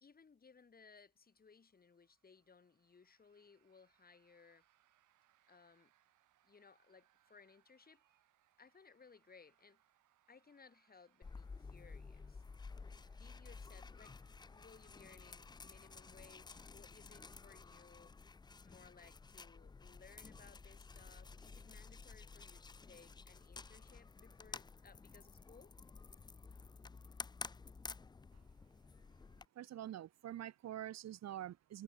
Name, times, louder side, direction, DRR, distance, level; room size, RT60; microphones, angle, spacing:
voice 1, 0.0-4.7 5.5-5.9 6.4-8.0 8.6-9.8 10.3-12.4 12.9-14.1 14.5-18.1 18.6-25.7 26.2-26.3, left 5 dB, 30° left, 1.8 m, -63 dB
sound 1, 1.1-14.9, right 13 dB, 80° right, 5.8 m, -78 dB
sound 2, 11.2-29.5, left 4 dB, 15° left, 0.4 m, -53 dB
voice 2, 29.6-31.8, right 12 dB, 60° right, 0.9 m, -46 dB
cardioid pair, 90°, 30 cm